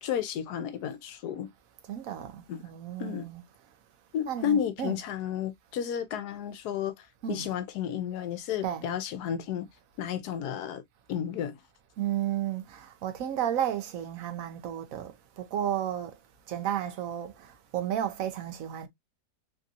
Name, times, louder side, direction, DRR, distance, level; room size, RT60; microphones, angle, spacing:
voice 1, 0.0-1.5 2.5-2.6 3.0-3.3 4.1-9.7 10.0-10.8 11.1-11.6, left 9 dB, 75° left, 1.1 m, -32 dB
voice 2, 1.9-3.4 4.3-5.0 7.2-7.5 8.6-8.9 12.0-16.2 16.5-18.9, right 10 dB, 65° right, 0.9 m, -33 dB
3.5 x 2.6 x 2.4 m
omnidirectional pair, 1.8 m